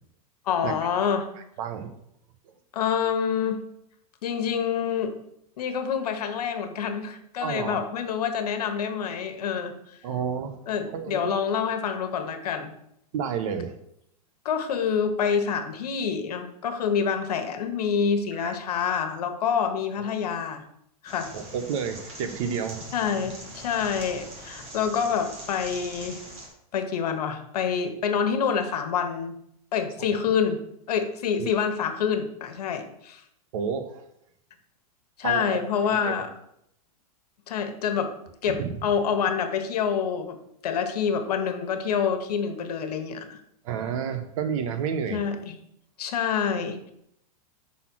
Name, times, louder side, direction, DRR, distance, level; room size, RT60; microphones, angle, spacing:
voice 1, 0.5-1.3 2.7-3.6 4.2-5.1 5.6-10.0 10.7-12.7 14.4-20.6 21.0-21.3 22.9-26.2 26.7-29.4 29.7-30.6 30.9-33.2 35.2-36.3 37.5-38.1 38.4-40.4 40.6-43.4 45.1-45.6 46.0-46.9, left 7 dB, 80° left, 7 dB, 1.1 m, -27 dB
voice 2, 1.6-1.9 7.4-7.8 10.0-10.6 10.9-11.3 13.1-13.8 18.4-18.5 21.3-22.8 30.0-30.1 31.4-31.5 33.5-34.0 35.2-35.6 35.9-36.2 38.6-38.8 43.6-45.2, right 7 dB, 55° right, 9 dB, 0.9 m, -30 dB
sound 1, 21.1-26.5, equal, 30° right, 1.7 m, -42 dB
5.3 x 4.2 x 6.0 m, 0.75 s
supercardioid pair, 145°, 20 cm